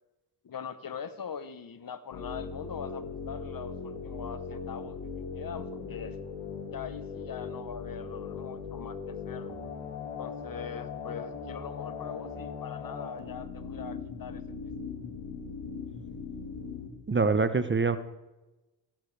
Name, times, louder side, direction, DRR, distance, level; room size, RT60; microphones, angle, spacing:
voice 1, 0.4-6.2 6.7-9.6 10.2-14.7, left 7 dB, 45° left, 13 dB, 1.0 m, -42 dB
sound 1, 2.1-16.9, left 5 dB, 90° left, 1.9 m, -39 dB
voice 2, 17.1-18.0, right 4 dB, 25° right, 12 dB, 0.9 m, -24 dB
15.0 x 12.0 x 3.4 m, 1.1 s
supercardioid pair, 55°, 47 cm